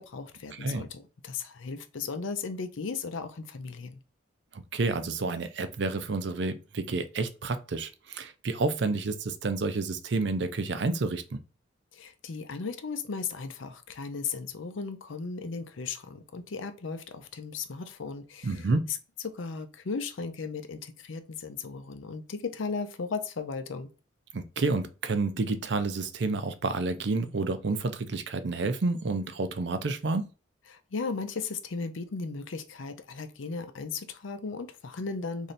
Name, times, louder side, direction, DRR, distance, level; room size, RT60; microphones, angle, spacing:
voice 1, 0.0-4.0 11.9-18.7 19.2-23.9 30.7-35.5, left 4 dB, 85° left, 0.6 m, -36 dB
voice 2, 0.5-0.8 4.5-11.4 18.4-18.9 24.3-30.3, right 3 dB, 65° right, 0.5 m, -30 dB
3.2 x 2.7 x 4.0 m
head